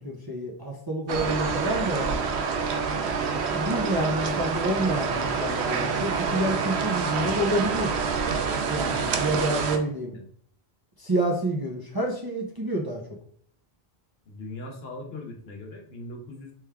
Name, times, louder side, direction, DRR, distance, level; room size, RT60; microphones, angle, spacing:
voice 1, 0.0-2.3 3.5-8.0 8.7-10.1 11.0-13.0, right 1 dB, 30° right, -2 dB, 0.5 m, -28 dB
sound 1, 1.1-9.8, right 5 dB, 90° right, 0.9 m, -27 dB
voice 2, 14.3-16.5, left 2 dB, 70° left, 2 dB, 1.1 m, -40 dB
3.5 x 3.2 x 3.4 m, 0.63 s
omnidirectional pair, 1.1 m